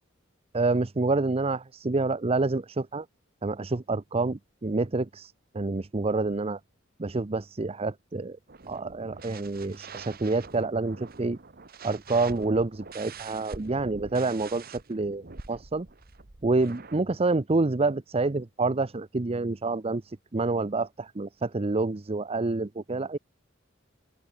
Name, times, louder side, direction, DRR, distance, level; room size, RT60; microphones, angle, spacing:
voice 1, 0.5-3.1 3.4-6.6 7.0-8.4 8.7-11.4 11.8-14.6 14.9-15.9 16.4-23.2, right 3 dB, 30° right, 0.6 m, -28 dB
sound 1, 8.5-17.0, right 4 dB, 50° right, 1.4 m, -45 dB
open air
head